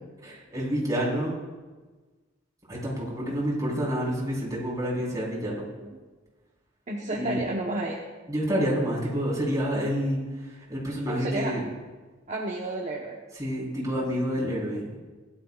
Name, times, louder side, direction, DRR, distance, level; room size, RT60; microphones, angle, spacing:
voice 1, 0.2-1.3 2.7-5.7 7.1-7.4 8.3-10.2 10.7-11.6 13.4-15.0, equal, 20° right, -5 dB, 4.2 m, -28 dB
voice 2, 6.9-8.1 11.1-11.6 12.3-13.2, right 2 dB, 40° right, -2 dB, 1.1 m, -31 dB
20.0 x 12.0 x 2.5 m, 1.3 s
head